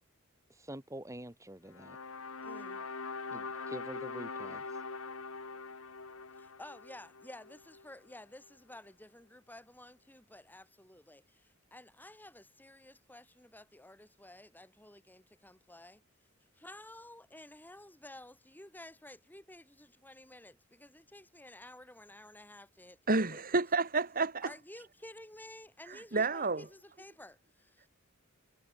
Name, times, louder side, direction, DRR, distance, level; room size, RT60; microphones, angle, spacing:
voice 1, 0.5-2.0 3.3-4.8, right 1 dB, 15° right, 3.5 m, -46 dB
sound 1, 1.7-7.9, left 4 dB, 70° left, 2.2 m, -43 dB
voice 2, 2.4-2.9 6.4-16.0 16.5-23.4 24.4-27.9, left 1 dB, 10° left, 7.7 m, -53 dB
voice 3, 23.1-24.5 25.9-26.7, right 3 dB, 40° right, 2.2 m, -30 dB
head